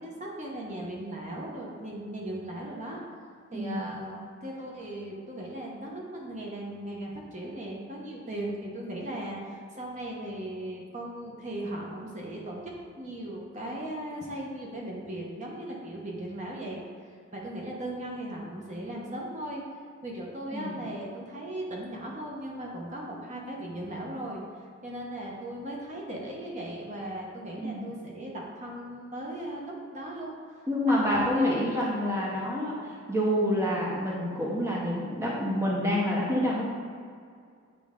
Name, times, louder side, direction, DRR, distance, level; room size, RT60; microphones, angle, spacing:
voice 1, 0.0-3.0 3.5-12.7 13.0-16.8 17.3-19.6 20.0-24.4 24.8-30.3 30.9-31.8, right 1 dB, 35° right, -2 dB, 1.0 m, -37 dB
voice 2, 3.5-3.9 20.5-20.8 27.6-27.9 30.7-36.7, left 1 dB, 15° right, -4 dB, 1.0 m, -28 dB
8.6 x 4.7 x 3.7 m, 2.2 s
head